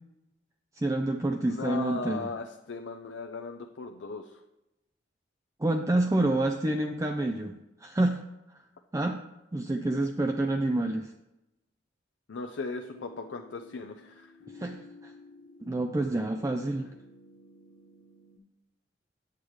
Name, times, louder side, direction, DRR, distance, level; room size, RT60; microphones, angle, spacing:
voice 1, 0.7-2.3 5.6-8.2 8.9-9.2 9.5-11.1 14.5-15.1 15.6-16.9, right 2 dB, 15° right, 4 dB, 0.4 m, -28 dB
voice 2, 1.4-4.4 12.3-14.3, left 4 dB, 70° left, 4 dB, 0.5 m, -37 dB
sound 1, 12.8-18.4, left 2 dB, 90° left, 1.2 m, -53 dB
8.6 x 8.2 x 3.1 m, 0.93 s
head